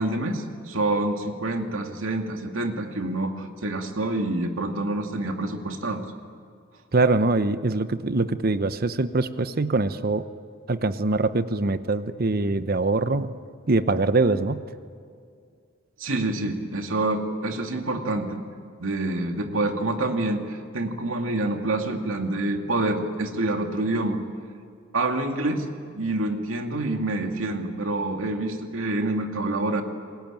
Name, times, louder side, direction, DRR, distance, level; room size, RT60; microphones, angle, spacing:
voice 1, 0.0-6.0 16.0-18.4 18.8-24.2 24.9-25.7 25.9-29.8, right 2 dB, 85° right, 4 dB, 2.4 m, -27 dB
voice 2, 6.9-10.2 10.7-13.3 13.7-14.6, right 3 dB, 50° right, 12 dB, 0.9 m, -23 dB
28.5 x 20.0 x 9.0 m, 2.2 s
head